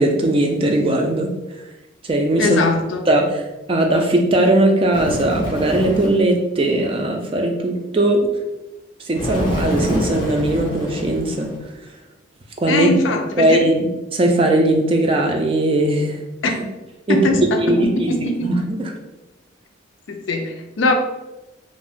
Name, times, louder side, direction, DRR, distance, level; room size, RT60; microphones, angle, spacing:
voice 1, 0.0-1.3 2.0-2.6 3.1-3.2 3.7-8.3 9.0-11.5 12.6-12.9 13.4-13.9 14.1-16.2 16.4-16.6 17.1-18.9, right 1 dB, 30° right, 2 dB, 0.4 m, -19 dB
voice 2, 2.4-3.0 12.7-13.7 16.4-16.5 17.1-18.6 20.1-20.9, left 2 dB, 75° left, 4 dB, 0.4 m, -21 dB
Bird, 4.9-6.3 9.2-11.7, equal, 25° left, 0.7 m, -26 dB
2.5 x 2.0 x 3.5 m, 1.0 s
head